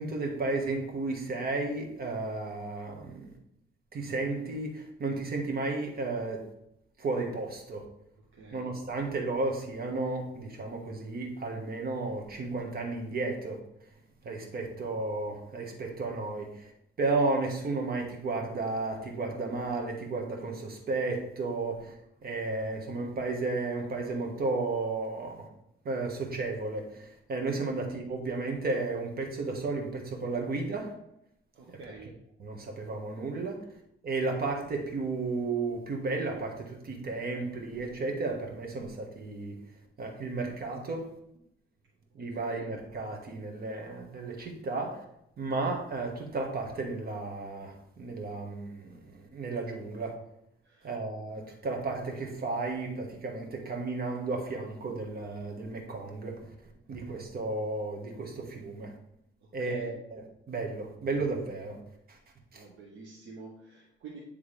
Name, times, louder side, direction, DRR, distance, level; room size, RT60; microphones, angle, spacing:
voice 1, 0.0-3.3 3.9-6.4 7.0-7.8 8.5-13.6 14.2-16.7 17.0-21.9 22.2-25.5 25.8-30.9 32.4-33.6 34.0-39.6 40.0-41.1 42.1-45.0 45.4-50.1 50.8-56.4 56.9-58.9 59.5-61.8 62.5-62.6, right 3 dB, 50° right, 2 dB, 1.6 m, -33 dB
voice 2, 8.3-8.8 31.5-32.2 42.3-42.7 50.6-50.9 59.4-60.0 62.5-64.2, right 4 dB, 75° right, -3 dB, 1.1 m, -49 dB
9.5 x 3.5 x 3.4 m, 0.79 s
cardioid pair, 90°, 20 cm